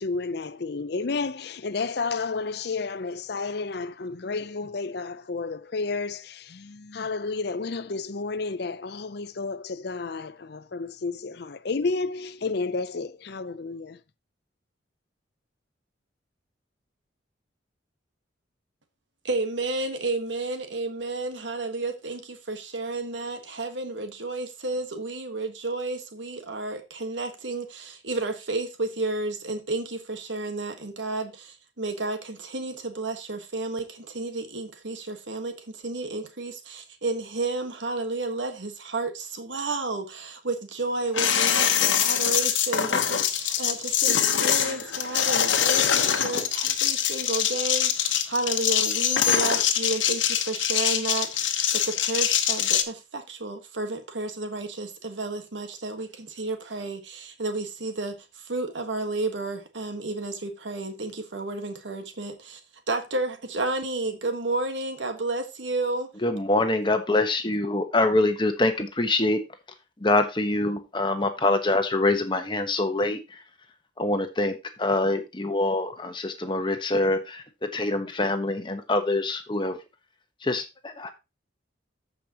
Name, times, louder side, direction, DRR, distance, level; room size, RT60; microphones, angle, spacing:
voice 1, 0.0-14.0, left 4 dB, 55° left, 0.6 m, -31 dB
voice 2, 19.2-62.6 62.9-66.1, right 2 dB, 75° right, 1.5 m, -31 dB
sound 1, 41.1-52.8, left 9 dB, 80° left, 1.1 m, -24 dB
voice 3, 66.2-69.4 70.0-73.4 74.0-79.8 80.4-81.1, left 2 dB, 25° left, 1.1 m, -25 dB
14.5 x 5.2 x 2.9 m
head